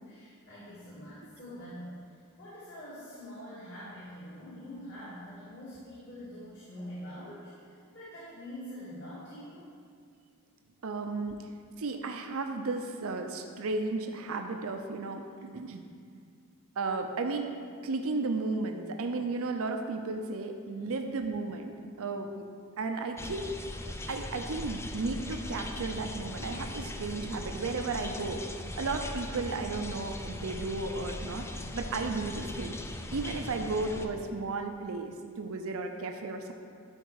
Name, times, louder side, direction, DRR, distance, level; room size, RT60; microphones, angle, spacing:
voice 1, 0.1-1.9 2.4-9.6 20.8-20.9, equal, 55° left, -11 dB, 2.3 m, -45 dB
voice 2, 10.8-11.4 11.8-15.8 16.8-17.5 17.8-21.7 22.0-22.5 22.8-23.5 24.1-28.4 28.8-31.4 31.7-32.7 33.1-36.5, right 3 dB, 65° right, 5 dB, 0.6 m, -34 dB
sound 1, 23.2-34.1, left 1 dB, 10° left, 0.4 m, -39 dB
11.5 x 4.5 x 4.8 m, 2.2 s
head